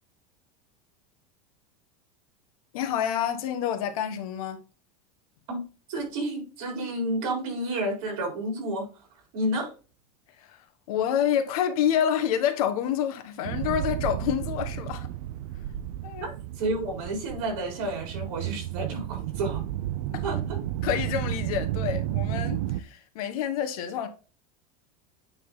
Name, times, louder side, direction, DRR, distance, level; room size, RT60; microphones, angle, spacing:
voice 1, 2.7-4.6 10.5-10.6 10.9-15.1 16.0-16.3 20.1-20.2 20.8-24.1, left 9 dB, 70° left, 1.2 m, -28 dB
voice 2, 5.9-8.9 9.3-9.7 16.2-16.3 16.6-19.6 20.2-20.6, right 1 dB, 55° right, 4.3 m, -30 dB
sound 1, 13.4-22.8, right 13 dB, 80° right, 0.6 m, -32 dB
9.2 x 3.8 x 3.8 m
supercardioid pair, 170°, 19 cm